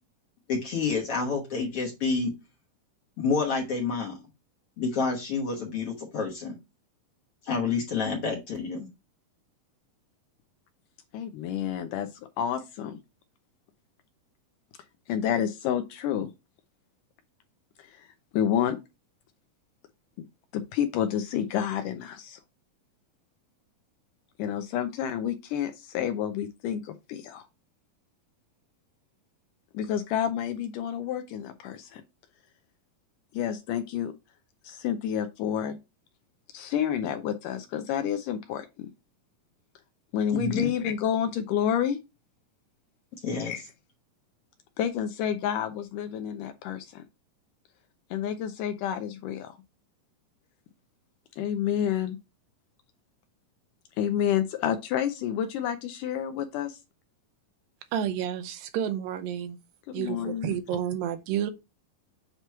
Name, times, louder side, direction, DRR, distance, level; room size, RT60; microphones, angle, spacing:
voice 1, 0.5-2.3 3.2-4.2 4.8-6.5 7.4-8.9 40.3-40.7 43.2-43.5, left 4 dB, 60° left, 1.6 m, -28 dB
voice 2, 11.1-12.1 12.4-13.0 15.1-16.3 18.3-18.8 20.5-22.4 24.4-27.4 29.7-32.0 33.3-34.1 34.6-35.8 36.5-38.9 40.1-42.0 43.4-43.6 44.8-47.0 48.1-49.5 51.4-52.2 54.0-56.8 59.9-60.6, left 9 dB, 80° left, 2.0 m, -29 dB
voice 3, 57.9-59.6 59.9-61.5, right 9 dB, 80° right, 2.4 m, -30 dB
7.9 x 3.0 x 4.6 m
omnidirectional pair, 4.1 m